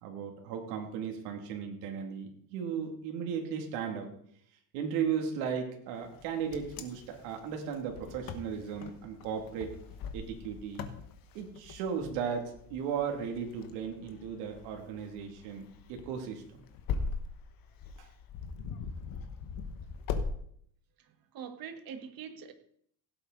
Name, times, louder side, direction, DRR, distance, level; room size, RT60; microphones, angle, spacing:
voice 1, 0.0-4.1 4.7-9.8 10.1-10.8 11.3-15.6 15.9-16.4 18.0-18.1, right 7 dB, 80° right, 3 dB, 2.6 m, -36 dB
Wind, 6.1-20.3, left 5 dB, 50° left, 1.3 m, -41 dB
voice 2, 21.0-22.5, right 7 dB, 50° right, 7 dB, 1.6 m, -44 dB
16.5 x 8.0 x 3.9 m, 0.66 s
cardioid pair, 135°, 45 cm